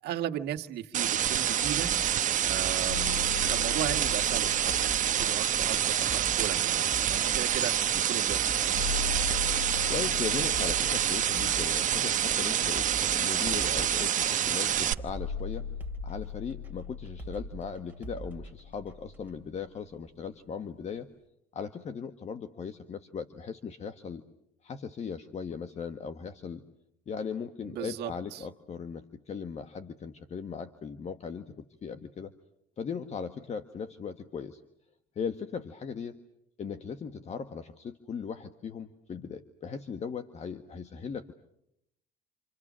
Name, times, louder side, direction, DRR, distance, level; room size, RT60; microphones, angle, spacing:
voice 1, 0.0-1.9 2.4-8.7 27.6-28.5, right 11 dB, 75° right, 3 dB, 1.7 m, -37 dB
sound 1, 0.9-14.9, right 10 dB, 50° right, 1.0 m, -27 dB
sound 2, 1.6-19.4, right 3 dB, 10° right, 2.6 m, -45 dB
sound 3, 2.9-7.3 8.7-13.6 15.1-19.5, left 7 dB, 85° left, 1.7 m, -40 dB
voice 2, 9.9-15.7 16.0-21.1 21.5-24.2 24.6-26.6 27.1-32.3 32.8-34.6 35.1-36.2 36.6-41.3, left 6 dB, 40° left, 8 dB, 1.5 m, -38 dB
29.5 x 27.0 x 6.3 m, 0.78 s
cardioid pair, 110°, 17 cm